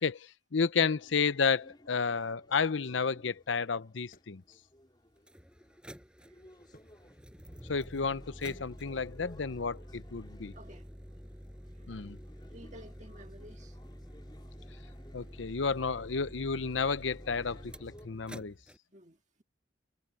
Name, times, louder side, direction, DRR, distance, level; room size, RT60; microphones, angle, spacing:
voice 1, 0.0-4.4 7.7-10.5 11.9-12.2 15.1-18.5, left 5 dB, 80° left, 0.7 m, -31 dB
sound 1, 0.9-18.1, left 1 dB, 25° left, 5.0 m, -60 dB
sound 2, 1.5-1.9 3.1-5.6 6.5-7.7 8.2-8.4, left 1 dB, 45° left, 6.5 m, -67 dB
sound 3, 4.5-4.6 5.2-18.8, equal, 5° right, 7.8 m, -49 dB
voice 2, 10.5-10.8 11.7-11.9 12.5-13.8 18.9-19.4, right 1 dB, 40° right, 2.0 m, -53 dB
head